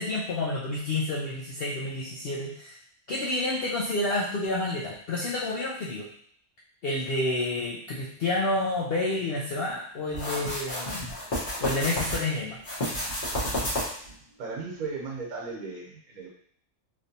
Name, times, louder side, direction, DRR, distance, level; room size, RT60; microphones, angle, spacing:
voice 1, 0.0-2.8 3.1-6.1 6.8-11.1 11.6-12.6, left 2 dB, 80° left, -4 dB, 0.5 m, -29 dB
sound 1, 10.1-12.2 12.6-14.1, equal, 40° left, 1.0 m, -30 dB
voice 2, 14.4-16.3, right 4 dB, 75° right, -2 dB, 1.3 m, -36 dB
3.2 x 2.7 x 2.7 m, 0.63 s
omnidirectional pair, 1.6 m